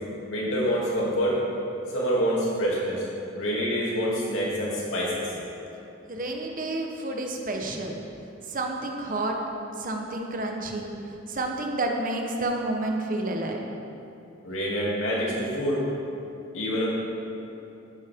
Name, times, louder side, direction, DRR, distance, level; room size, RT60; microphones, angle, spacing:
voice 1, 0.3-1.4 1.9-3.0 3.3-5.2 14.4-15.8 16.5-16.9, equal, 75° left, -6 dB, 2.8 m, -26 dB
voice 2, 6.1-8.0 8.5-9.4 9.8-10.9 11.3-13.6, right 2 dB, 45° right, 2 dB, 1.1 m, -30 dB
12.0 x 10.5 x 3.7 m, 2.9 s
head